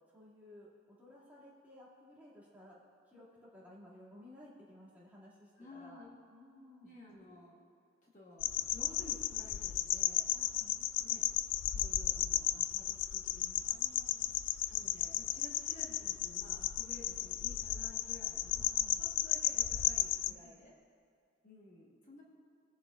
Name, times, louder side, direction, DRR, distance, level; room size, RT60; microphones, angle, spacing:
voice 1, 0.1-2.8 3.1-6.0 6.3-7.0 10.3-10.8 13.7-14.5 18.6-19.1 20.3-20.7, left 1 dB, 10° right, -8 dB, 2.2 m, -57 dB
voice 2, 5.6-6.2 6.8-7.6 8.0-10.3 11.0-11.3 11.7-13.7 14.7-18.7 19.0-20.7 21.4-22.2, left 2 dB, 40° left, -3 dB, 1.3 m, -54 dB
sound 1, 8.4-20.3, left 12 dB, 75° left, 0.3 m, -34 dB
20.0 x 7.0 x 2.4 m, 2.4 s
head